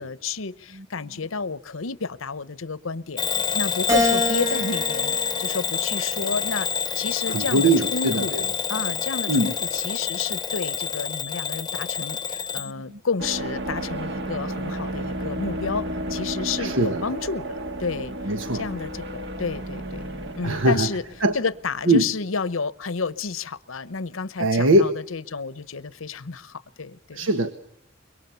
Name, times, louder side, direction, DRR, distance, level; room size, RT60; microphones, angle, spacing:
voice 1, 0.0-3.2 3.5-6.7 6.9-8.4 8.7-18.1 18.5-20.0 20.3-21.0 21.3-27.3, left 4 dB, 90° left, 16 dB, 0.9 m, -31 dB
Bell / Alarm, 3.2-12.7, left 6 dB, 20° left, 0.9 m, -27 dB
Keyboard (musical), 3.9-6.4 7.0-8.2, equal, 15° right, 2.0 m, -28 dB
voice 2, 7.3-8.4 9.3-9.5 12.6-13.0 16.6-17.1 18.3-18.6 20.4-21.4 21.9-22.0 24.4-24.9 27.1-27.5, right 1 dB, 80° right, 8 dB, 1.5 m, -22 dB
sound 1, 13.2-21.8, right 1 dB, 60° right, 2.0 m, -32 dB
25.5 x 23.0 x 6.9 m, 0.70 s
head